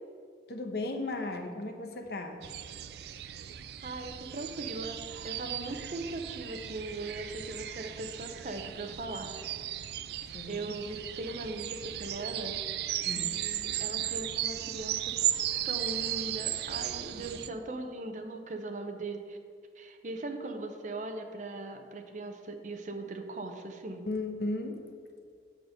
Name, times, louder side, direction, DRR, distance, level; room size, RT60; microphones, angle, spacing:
voice 1, 0.5-2.4 10.3-10.6 13.0-13.4 24.0-24.8, left 2 dB, 60° left, 5 dB, 0.9 m, -35 dB
sound 1, 2.4-17.5, right 12 dB, 60° right, 0.4 m, -36 dB
voice 2, 3.8-9.3 10.5-12.6 13.1-15.1 15.6-19.4 19.8-24.0, right 2 dB, 45° right, 4 dB, 0.7 m, -39 dB
8.7 x 5.2 x 6.5 m, 2.2 s
head